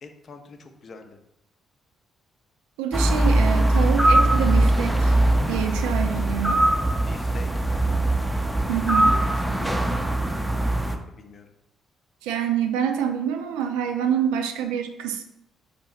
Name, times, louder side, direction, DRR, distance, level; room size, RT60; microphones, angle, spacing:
voice 1, 0.0-1.2 7.1-7.5 8.9-10.0 10.4-11.5, left 3 dB, 45° left, 6 dB, 0.5 m, -44 dB
voice 2, 2.8-5.1 5.5-6.6 8.7-9.2 12.2-15.2, right 9 dB, 70° right, 5 dB, 0.3 m, -26 dB
sound 1, 2.9-11.0, right 1 dB, 5° right, 0.5 m, -21 dB
4.9 x 2.6 x 3.1 m, 0.83 s
figure-of-eight pair, 40°, 0 cm